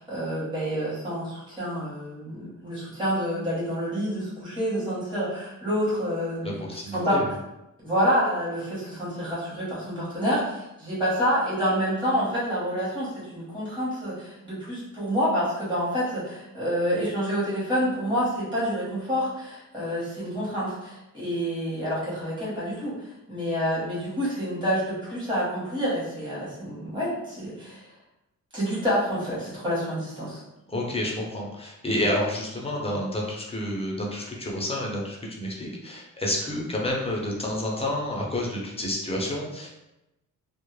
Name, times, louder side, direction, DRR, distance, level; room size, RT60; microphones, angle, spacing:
voice 1, 0.0-7.2 7.8-22.9 23.3-27.8 28.5-30.4, equal, 15° right, -9 dB, 1.0 m, -28 dB
voice 2, 6.4-7.3 30.7-39.7, left 1 dB, 15° left, -2 dB, 0.5 m, -29 dB
2.3 x 2.0 x 3.1 m, 0.93 s
wide cardioid pair, 105°, 34 cm